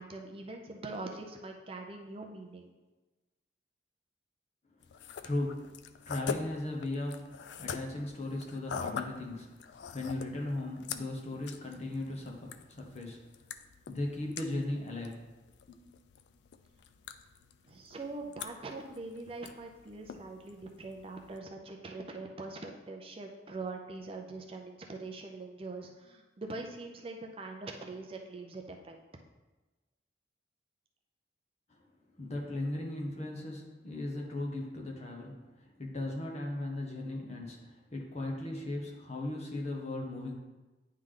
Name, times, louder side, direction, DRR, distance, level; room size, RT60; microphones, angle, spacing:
voice 1, 0.0-2.7 17.6-29.0, right 3 dB, 30° right, 2 dB, 0.5 m, -43 dB
sound 1, 4.8-21.4, left 6 dB, 70° left, 0.4 m, -45 dB
voice 2, 5.2-13.2 13.9-15.2 15.7-15.8 31.7-31.8 32.2-40.4, left 2 dB, 35° left, 0 dB, 1.0 m, -37 dB
9.4 x 3.3 x 3.7 m, 1.2 s
head